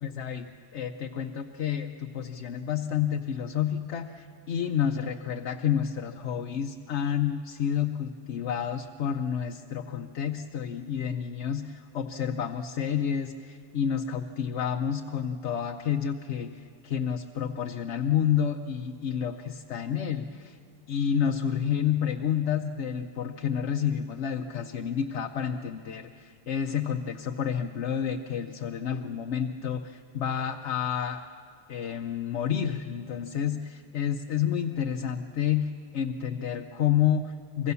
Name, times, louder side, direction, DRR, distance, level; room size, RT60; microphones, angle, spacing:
voice 1, 0.0-20.6 20.9-31.2 31.7-37.7, left 8 dB, 85° left, 5 dB, 1.1 m, -29 dB
24.5 x 23.5 x 6.9 m, 2.3 s
omnidirectional pair, 1.1 m